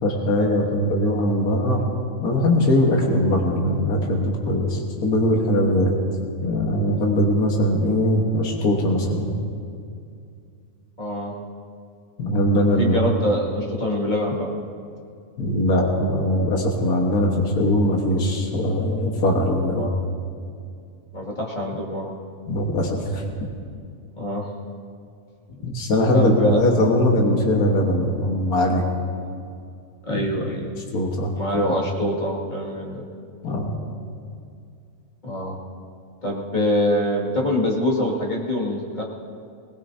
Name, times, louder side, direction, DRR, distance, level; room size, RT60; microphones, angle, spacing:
voice 1, 0.0-1.8 2.2-5.9 6.4-9.3 12.2-13.0 15.4-19.9 22.5-23.2 25.6-28.8 30.1-30.3 30.9-31.8 33.4-33.7, left 1 dB, 70° left, -1 dB, 1.9 m, -21 dB
voice 2, 11.0-11.3 12.8-14.5 19.8-19.9 21.1-22.1 24.1-24.5 26.1-26.6 30.1-30.7 31.4-33.0 35.2-35.6 36.2-39.0, left 1 dB, 30° left, -4 dB, 2.4 m, -24 dB
20.5 x 20.0 x 2.8 m, 2.4 s
omnidirectional pair, 1.6 m